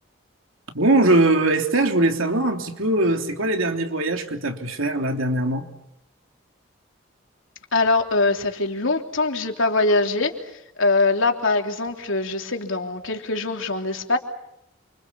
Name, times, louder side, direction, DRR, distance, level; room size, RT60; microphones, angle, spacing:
voice 1, 0.7-5.7, right 2 dB, 90° right, 4 dB, 3.3 m, -21 dB
voice 2, 7.7-10.3 10.8-14.2, left 3 dB, 75° left, 3 dB, 3.3 m, -22 dB
28.5 x 26.0 x 7.1 m, 0.81 s
head